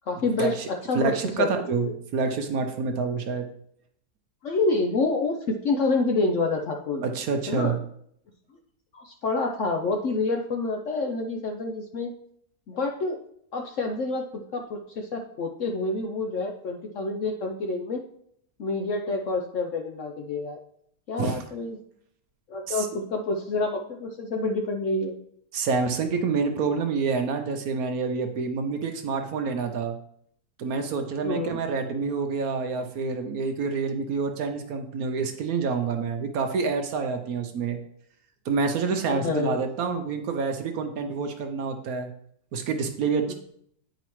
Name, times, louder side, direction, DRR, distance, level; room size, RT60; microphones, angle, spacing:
voice 1, 0.1-1.5 1.8-1.9 4.4-5.4 5.6-7.0 7.5-7.7 8.9-12.1 12.7-13.2 13.5-14.2 14.5-18.0 18.6-20.6 21.1-21.8 22.5-25.2 31.2-31.6 39.1-39.6 43.3-43.4, left 3 dB, 65° left, 3 dB, 0.8 m, -27 dB
voice 2, 0.9-3.5 7.0-7.8 21.2-21.4 22.7-22.9 25.5-30.0 30.6-37.8 38.4-42.1 42.5-43.3, right 5 dB, 65° right, 6 dB, 1.0 m, -27 dB
9.2 x 4.9 x 3.0 m, 0.69 s
omnidirectional pair, 1.9 m